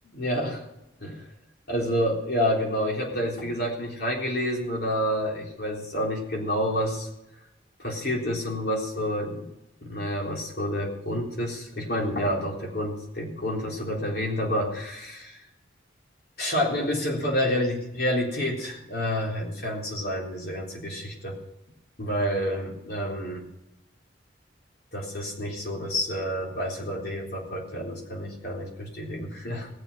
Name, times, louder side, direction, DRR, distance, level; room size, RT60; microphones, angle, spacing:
voice 1, 0.0-0.6 1.0-1.2 1.7-7.1 7.8-9.5 9.8-15.5 16.4-21.4 22.0-23.4 24.9-29.7, equal, 55° left, -1 dB, 3.8 m, -29 dB
19.5 x 7.1 x 6.3 m, 0.89 s
head